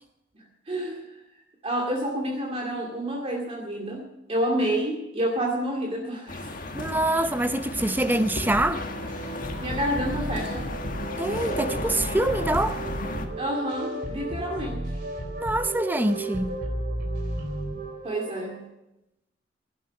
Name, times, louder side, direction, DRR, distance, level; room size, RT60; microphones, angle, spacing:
voice 1, 0.7-1.0 1.6-6.5 9.6-10.7 13.4-14.9 18.0-18.7, equal, 35° right, 2.2 m, -29 dB
sound 1, 6.3-13.3, left 2 dB, 50° left, 1.7 m, -34 dB
voice 2, 6.7-8.8 11.2-12.8 15.4-16.6, right 1 dB, 10° right, 0.7 m, -25 dB
sound 2, 8.5-18.6, right 1 dB, 60° right, 3.8 m, -33 dB
17.5 x 11.5 x 5.9 m
head